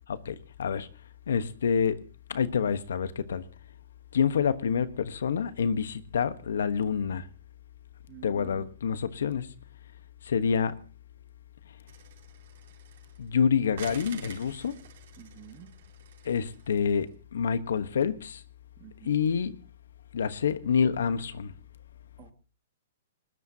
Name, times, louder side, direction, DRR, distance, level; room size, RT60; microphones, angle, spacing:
voice 1, 0.1-0.9 1.3-2.0 2.3-3.4 4.1-7.3 8.2-9.5 10.2-10.8 13.2-14.7 16.2-18.4 19.0-19.5 20.1-21.5, left 6 dB, 80° left, 1.2 m, -27 dB
voice 2, 8.1-8.7 15.2-15.7 18.8-19.3 22.2-22.3, right 11 dB, 30° right, 2.0 m, -48 dB
sound 1, 11.9-13.3 13.7-17.0, right 8 dB, 60° right, 4.6 m, -48 dB
20.0 x 20.0 x 2.9 m
hypercardioid pair, 150°, 0 cm